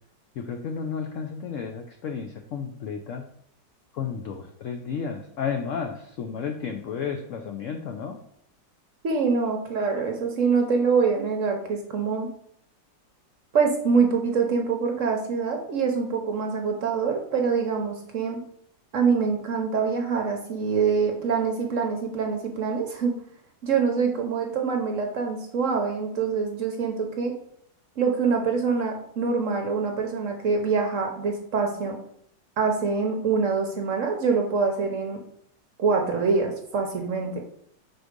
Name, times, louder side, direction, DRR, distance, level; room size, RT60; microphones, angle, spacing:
voice 1, 0.4-3.2 3.9-8.2, left 6 dB, 90° left, 5 dB, 0.6 m, -32 dB
voice 2, 9.0-12.3 13.5-18.4 18.9-23.1 23.6-27.3 28.0-32.0 32.6-35.2 35.8-37.4, right 5 dB, 60° right, 3 dB, 0.9 m, -25 dB
4.8 x 4.0 x 5.1 m, 0.69 s
omnidirectional pair, 2.0 m